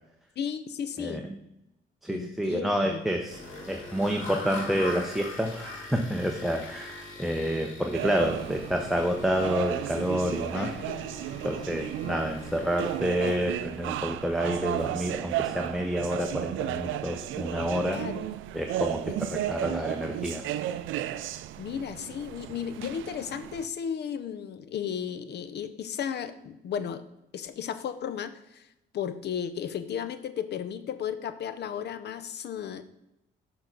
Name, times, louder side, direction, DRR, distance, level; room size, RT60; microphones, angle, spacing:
voice 1, 0.4-1.2 2.1-3.0 10.5-11.2 17.9-18.3 19.3-19.4 21.6-27.0 27.3-28.7 28.9-32.8, left 8 dB, 60° left, 12 dB, 0.6 m, -34 dB
voice 2, 1.0-1.4 2.0-3.4 3.7-10.7 11.4-18.0 18.5-20.4, equal, ahead, 2 dB, 0.7 m, -29 dB
sound 1, 3.3-13.0, left 1 dB, 80° left, 1.8 m, -42 dB
sound 2, 7.9-23.7, right 13 dB, 85° right, 0.4 m, -34 dB
6.3 x 6.0 x 3.9 m, 0.88 s
cardioid pair, 90°, 20 cm